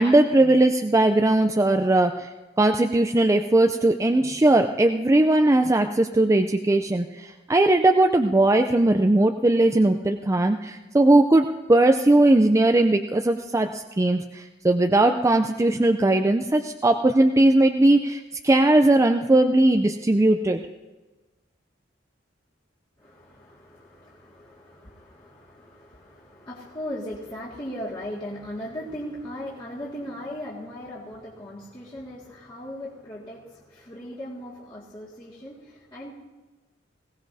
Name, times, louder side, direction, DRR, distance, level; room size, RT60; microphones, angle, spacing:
voice 1, 0.0-2.3 2.6-20.6, right 2 dB, 15° right, 5 dB, 0.4 m, -19 dB
voice 2, 23.0-36.1, equal, 30° left, -8 dB, 2.0 m, -38 dB
20.5 x 17.0 x 2.7 m, 1.2 s
head